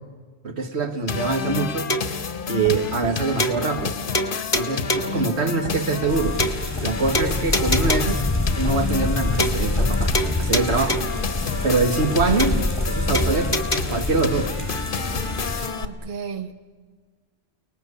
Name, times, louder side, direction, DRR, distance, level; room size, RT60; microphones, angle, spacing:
voice 1, 0.4-1.9 2.5-4.0 4.5-6.4 6.8-8.2 8.6-10.0 10.4-11.0 11.6-12.6 12.9-13.6 13.9-14.5, right 3 dB, 85° right, 1.9 m, -24 dB
sound 1, 1.1-15.9, left 5 dB, 55° left, 1.1 m, -30 dB
sound 2, 1.9-2.2 2.6-2.7 3.0-3.1 3.4-3.9 4.1-5.2 5.6-5.7 6.0-6.1 6.4-6.9 7.1-8.2 8.6-8.7 9.0-9.1 9.4-9.9 10.1-11.2 11.6-11.7 12.0-12.1 12.4-12.9 13.1-13.8, equal, 30° left, 1.8 m, -26 dB
sound 3, 6.1-15.7, left 2 dB, 10° left, 3.0 m, -26 dB
voice 2, 15.8-16.5, right 7 dB, 50° right, 1.2 m, -33 dB
30.0 x 19.5 x 8.3 m
omnidirectional pair, 1.1 m